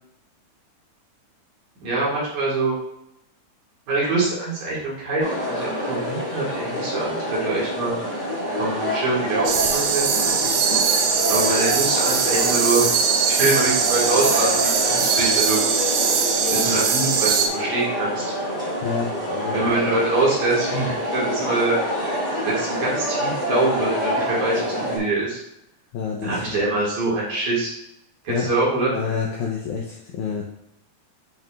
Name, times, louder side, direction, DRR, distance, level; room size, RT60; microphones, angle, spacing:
voice 1, 1.8-2.8 3.9-8.3 8.6-10.6 10.9-11.0 11.3-12.9 13.3-16.0 16.5-18.4 19.5-21.8 22.4-25.4 26.2-27.7 28.2-28.9, right 2 dB, 55° right, -6 dB, 3.2 m, -24 dB
sound 1, 5.2-25.0, equal, 15° left, 1.8 m, -27 dB
sound 2, 9.5-17.5, right 6 dB, 80° right, 2.6 m, -21 dB
voice 2, 18.8-19.8 25.9-26.4 28.3-28.5 28.9-30.4, left 6 dB, 80° left, -1 dB, 1.8 m, -28 dB
9.0 x 5.9 x 2.4 m, 0.81 s
omnidirectional pair, 4.3 m